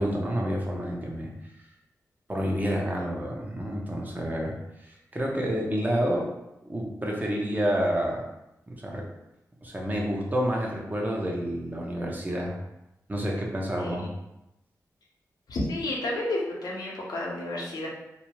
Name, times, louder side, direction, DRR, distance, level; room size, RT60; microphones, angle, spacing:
voice 1, 0.0-1.3 2.3-4.5 4.8-6.3 6.6-8.2 8.7-9.1 9.6-12.5 13.1-14.1, equal, 25° right, -2 dB, 0.7 m, -29 dB
voice 2, 13.8-14.1 15.5-17.9, left 1 dB, 85° left, -3 dB, 0.7 m, -31 dB
2.5 x 2.1 x 3.0 m, 0.89 s
cardioid pair, 45°, 7 cm